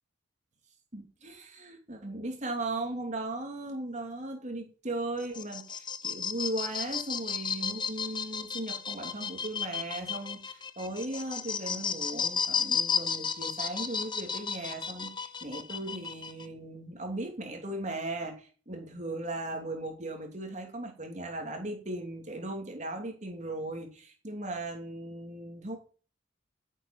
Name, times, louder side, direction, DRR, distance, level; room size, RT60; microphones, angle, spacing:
voice 1, 0.9-25.8, right 2 dB, 40° right, 2 dB, 3.0 m, -37 dB
sound 1, 5.2-16.5, left 6 dB, 25° left, 0.9 m, -33 dB
11.0 x 8.3 x 9.1 m, 0.40 s
head